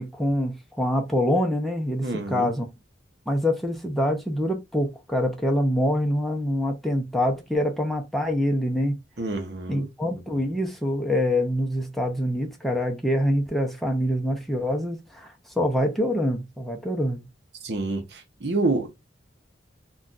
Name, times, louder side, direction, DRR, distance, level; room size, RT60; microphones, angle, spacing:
voice 1, 0.0-2.7 3.3-9.0 9.7-17.2, left 1 dB, ahead, 0.5 m, -25 dB
voice 2, 2.0-2.5 9.2-9.9 17.6-18.9, right 2 dB, 60° right, 0.7 m, -27 dB
2.5 x 2.3 x 3.7 m
head